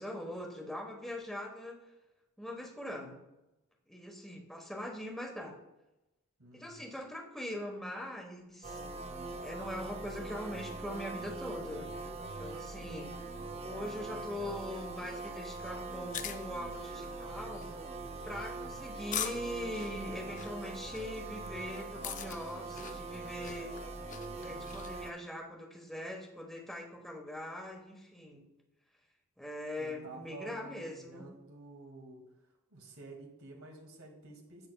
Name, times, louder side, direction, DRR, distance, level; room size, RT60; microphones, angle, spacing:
voice 1, 0.0-1.8 2.4-3.2 3.9-5.6 6.5-8.8 9.3-11.9 12.4-13.1 13.6-17.7 18.2-23.7 24.4-28.4 29.4-31.2, left 1 dB, ahead, 0 dB, 1.0 m, -42 dB
voice 2, 6.4-6.9 29.8-32.2 32.7-34.7, right 3 dB, 80° right, 1 dB, 2.0 m, -50 dB
sound 1, 8.6-25.1, right 3 dB, 30° right, 0.5 m, -42 dB
sound 2, 15.9-25.0, left 8 dB, 35° left, 0.4 m, -44 dB
10.0 x 8.3 x 2.2 m, 0.97 s
head